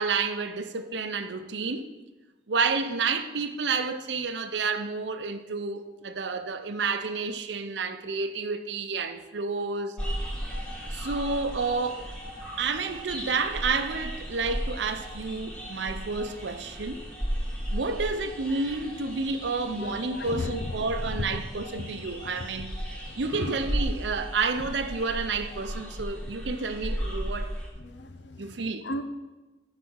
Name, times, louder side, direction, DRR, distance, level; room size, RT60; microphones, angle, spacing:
voice 1, 0.0-1.8 2.5-10.0 10.9-12.1 12.6-17.0 17.7-27.5 28.4-28.9, right 4 dB, 85° right, 0.6 m, -30 dB
sound 1, 10.0-27.7, equal, 5° left, 1.3 m, -35 dB
voice 2, 19.8-20.6 23.4-23.5 27.9-28.5 28.8-29.0, left 2 dB, 85° left, 0.7 m, -34 dB
9.4 x 4.1 x 6.2 m
head